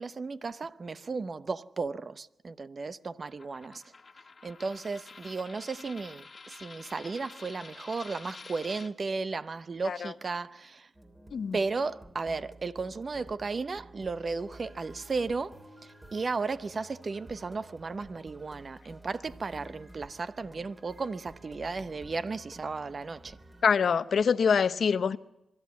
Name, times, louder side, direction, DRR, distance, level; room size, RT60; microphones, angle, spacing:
voice 1, 0.0-3.8 4.4-10.9 11.5-23.4, right 4 dB, 50° right, 0.7 m, -35 dB
Coin (dropping), 3.4-8.9, left 4 dB, 45° left, 1.6 m, -49 dB
sound 1, 10.9-23.7, right 1 dB, 25° right, 3.0 m, -52 dB
voice 2, 23.6-25.2, left 6 dB, 70° left, 0.7 m, -25 dB
24.5 x 12.0 x 9.5 m
cardioid pair, 65°, 0 cm